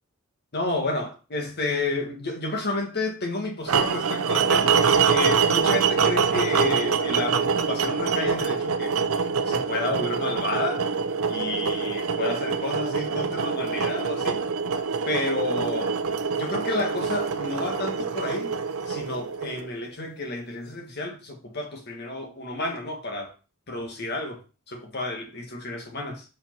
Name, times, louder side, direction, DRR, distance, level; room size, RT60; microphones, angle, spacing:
voice 1, 0.5-4.7 5.0-9.0 9.4-10.8 11.3-14.5 15.0-15.9 16.3-18.6 18.8-23.3 23.7-24.4 24.7-26.2, left 2 dB, 50° left, 1.7 m, -31 dB
sound 1, 3.7-19.8, right 5 dB, 70° right, 0.6 m, -25 dB
5.2 x 4.9 x 4.5 m
head